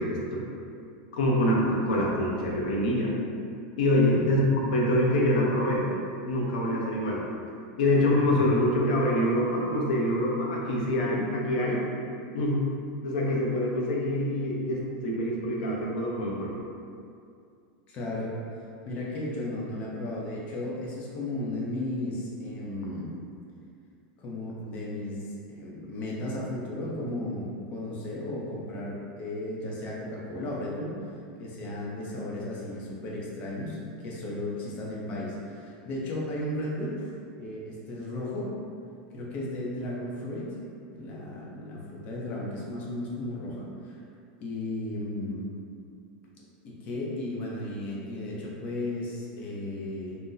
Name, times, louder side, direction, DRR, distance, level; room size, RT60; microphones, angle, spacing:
voice 1, 1.1-3.1 3.8-4.4 4.7-6.0 6.3-7.2 7.8-11.8 12.3-12.6 13.0-16.5, left 1 dB, 80° left, -3 dB, 0.7 m, -25 dB
voice 2, 4.0-4.3 17.9-18.3 18.8-23.2 24.2-30.9 31.4-37.1 37.4-38.5 39.1-40.6 40.9-44.0 44.4-45.5 46.4-50.2, left 1 dB, 30° left, -4 dB, 0.6 m, -35 dB
2.6 x 2.1 x 3.8 m, 2.4 s
supercardioid pair, 160°, 4 cm